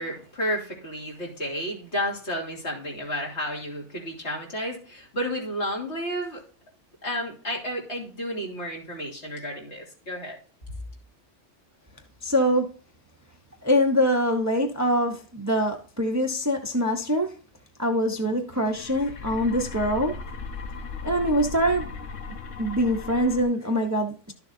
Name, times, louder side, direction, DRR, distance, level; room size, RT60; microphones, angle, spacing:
voice 1, 0.0-6.4 7.0-10.4, equal, 60° left, 3.2 m, -31 dB
voice 2, 12.2-12.7 13.6-17.3 17.8-20.2 21.0-21.9 22.6-24.3, equal, 15° right, 0.9 m, -24 dB
sound 1, 18.5-23.4, left 4 dB, 75° left, 1.3 m, -37 dB
12.5 x 7.0 x 2.7 m
omnidirectional pair, 1.3 m